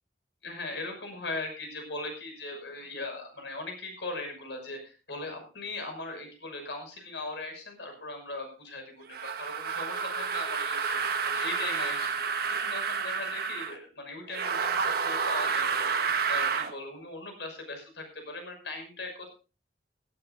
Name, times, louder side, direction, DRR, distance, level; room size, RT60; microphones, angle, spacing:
voice 1, 0.4-19.3, left 2 dB, 80° left, 4 dB, 6.1 m, -39 dB
sound 1, 9.1-13.8 14.3-16.7, right 5 dB, 60° right, 1.3 m, -30 dB
17.0 x 16.0 x 2.6 m, 0.33 s
head